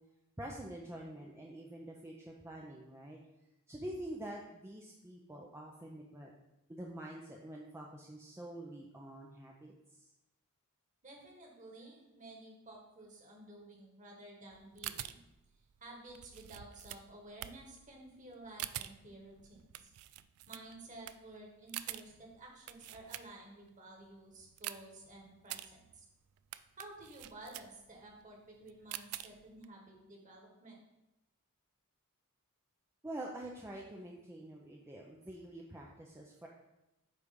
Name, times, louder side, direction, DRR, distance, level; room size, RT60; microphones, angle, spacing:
voice 1, 0.4-3.2 3.7-6.3 6.7-9.7 10.0-10.1 33.0-36.5, right 1 dB, 10° right, -2 dB, 0.6 m, -46 dB
voice 2, 11.0-15.2 15.8-19.9 20.5-26.1 26.8-30.8, right 2 dB, 35° right, -1 dB, 1.7 m, -53 dB
sound 1, 14.5-23.7 24.1-29.7, right 13 dB, 70° right, 0.3 m, -47 dB
8.3 x 3.3 x 5.2 m, 0.92 s
head